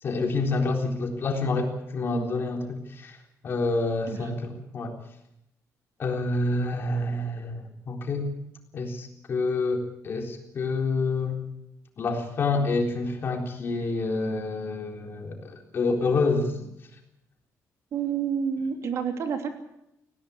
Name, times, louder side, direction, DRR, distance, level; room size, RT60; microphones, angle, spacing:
voice 1, 0.0-3.2 3.4-4.9 6.0-8.3 8.7-11.4 12.0-16.6, left 3 dB, 40° left, 2 dB, 3.9 m, -28 dB
voice 2, 17.9-19.5, right 7 dB, 60° right, 5 dB, 2.9 m, -29 dB
19.0 x 17.5 x 8.6 m, 0.84 s
cardioid pair, 150°, 6 cm